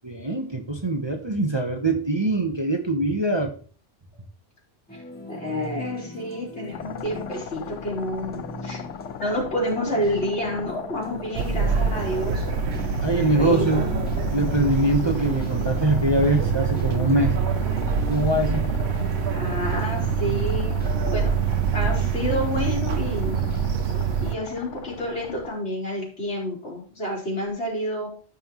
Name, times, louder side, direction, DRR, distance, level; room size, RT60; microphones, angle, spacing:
voice 1, 0.0-3.5 13.0-13.9 14.3-17.3 18.1-18.7, right 1 dB, 25° right, 3 dB, 1.1 m, -23 dB
sound 1, 4.9-23.8, right 1 dB, 10° left, 1.7 m, -39 dB
voice 2, 5.3-8.8 9.2-12.4 13.4-14.2 19.3-21.3 21.7-23.4 24.2-28.1, left 1 dB, 65° left, -4 dB, 4.2 m, -29 dB
sound 2, 6.7-25.5, left 8 dB, 85° left, 1.0 m, -39 dB
sound 3, 11.3-24.3, right 6 dB, 65° right, 1.0 m, -25 dB
15.0 x 5.6 x 3.1 m, 0.41 s
omnidirectional pair, 1.2 m